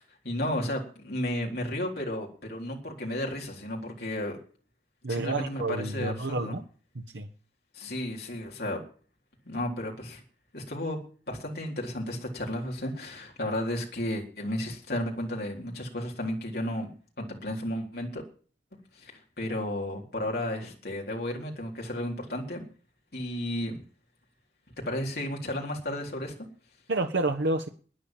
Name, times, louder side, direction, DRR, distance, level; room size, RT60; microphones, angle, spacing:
voice 1, 0.0-4.4 5.1-6.5 7.7-8.8 9.5-10.2 10.5-11.0 11.3-16.9 17.2-18.2 18.9-22.7 23.1-23.8 24.9-26.3, left 1 dB, 55° left, 0 dB, 3.9 m, -33 dB
voice 2, 5.0-6.6 6.9-7.3 26.9-27.7, right 2 dB, 80° right, 4 dB, 1.1 m, -29 dB
12.5 x 10.0 x 7.3 m, 0.41 s
head